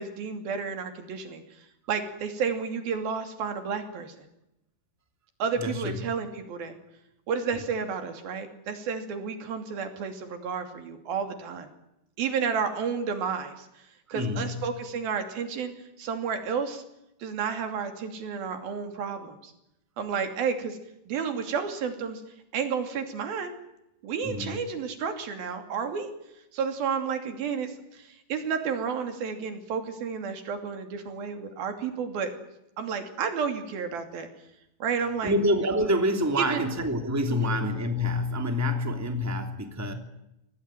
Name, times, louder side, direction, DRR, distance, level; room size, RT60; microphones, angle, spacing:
voice 1, 0.0-1.4 1.9-4.3 5.4-6.8 7.3-11.7 12.2-13.7 14.1-15.7 16.0-16.8 17.2-19.5 20.0-20.8 21.1-22.2 22.5-23.5 24.0-26.1 26.5-32.3 32.8-34.3 34.8-35.3 36.4-36.6 37.3-37.5, right 6 dB, 80° right, 7 dB, 4.6 m, -31 dB
voice 2, 5.6-6.0 14.1-14.6 24.2-24.6 35.2-39.9, left 1 dB, 5° right, 5 dB, 2.4 m, -27 dB
26.0 x 18.5 x 9.2 m, 0.85 s
omnidirectional pair, 4.2 m